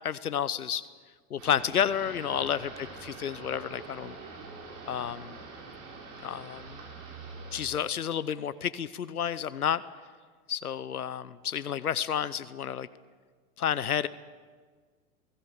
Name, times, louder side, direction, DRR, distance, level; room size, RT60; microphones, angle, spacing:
voice 1, 0.0-0.8 1.3-4.1 4.9-5.4 6.2-6.8 7.5-9.8 10.5-12.9 13.6-14.1, left 9 dB, 90° left, 16 dB, 0.9 m, -30 dB
sound 1, 1.4-7.6, right 4 dB, 60° right, 6.7 m, -45 dB
28.5 x 18.5 x 6.7 m, 1.5 s
hypercardioid pair, 95°, 43 cm